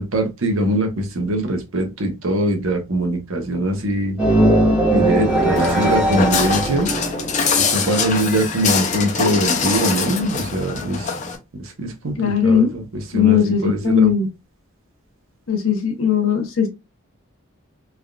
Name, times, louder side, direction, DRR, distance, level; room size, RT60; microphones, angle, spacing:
voice 1, 0.0-4.2 4.9-6.9 7.6-11.1 11.6-14.1, right 1 dB, 75° right, 0.8 m, -22 dB
sound 1, 4.2-8.1, right 1 dB, 5° right, 0.7 m, -19 dB
Walk footsteps, 5.6-11.4, left 5 dB, 35° left, 0.5 m, -23 dB
voice 2, 12.2-12.7 13.1-14.3 15.5-16.7, left 7 dB, 75° left, 0.8 m, -18 dB
3.4 x 2.4 x 2.2 m
head